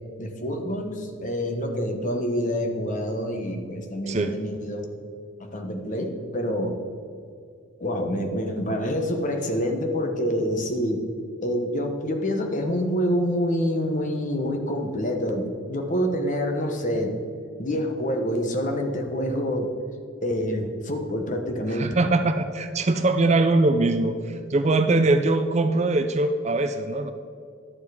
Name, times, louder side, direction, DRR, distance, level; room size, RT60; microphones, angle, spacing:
voice 1, 0.2-4.9 5.4-6.8 7.8-11.1 11.4-17.2 17.6-19.7 20.2-22.0, equal, 35° left, 4 dB, 1.0 m, -27 dB
voice 2, 21.7-27.1, right 2 dB, 30° right, 8 dB, 0.4 m, -22 dB
11.0 x 7.1 x 4.8 m, 2.4 s
head